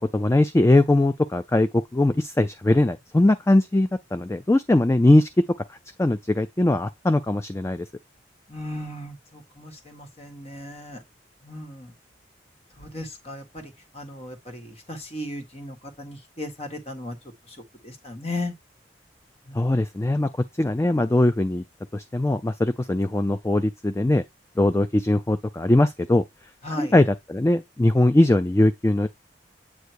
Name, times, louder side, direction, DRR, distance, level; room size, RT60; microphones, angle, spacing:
voice 1, 0.1-5.3 5.7-7.9 19.5-20.3 20.6-21.6 21.9-24.2 24.6-26.2 26.7-29.1, left 1 dB, 15° left, 0.3 m, -21 dB
voice 2, 8.5-11.0 11.4-11.9 12.8-17.2 17.5-17.6 17.8-18.5 19.5-19.7 26.6-26.9, left 1 dB, 35° left, 1.6 m, -36 dB
8.1 x 2.7 x 4.6 m
head